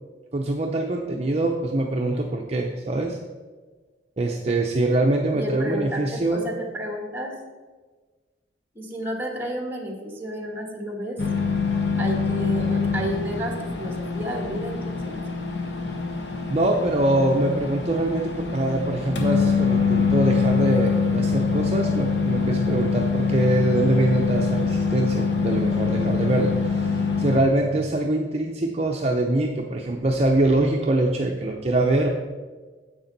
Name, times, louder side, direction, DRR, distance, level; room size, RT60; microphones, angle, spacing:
voice 1, 0.3-3.2 4.2-6.5 16.5-32.1, right 2 dB, 35° right, 1 dB, 0.6 m, -23 dB
voice 2, 5.3-7.3 8.7-11.2 12.0-15.2, equal, 10° right, 1 dB, 1.5 m, -31 dB
sound 1, 11.2-27.4, left 5 dB, 70° left, 1.2 m, -24 dB
10.0 x 7.5 x 4.1 m, 1.3 s
head